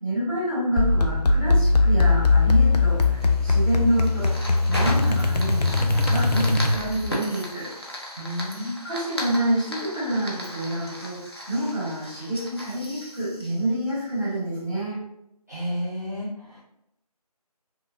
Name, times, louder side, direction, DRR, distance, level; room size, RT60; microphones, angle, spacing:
voice 1, 0.0-7.7 8.8-15.0, right 1 dB, 5° left, -9 dB, 1.2 m, -28 dB
sound 1, 0.8-7.1, left 3 dB, 90° left, 0.5 m, -20 dB
Fire, 3.0-14.4, left 1 dB, 40° left, 0.6 m, -36 dB
voice 2, 8.2-8.8 15.5-16.6, equal, 25° right, -8 dB, 0.7 m, -31 dB
2.9 x 2.4 x 2.5 m, 0.80 s
figure-of-eight pair, 175°, 20 cm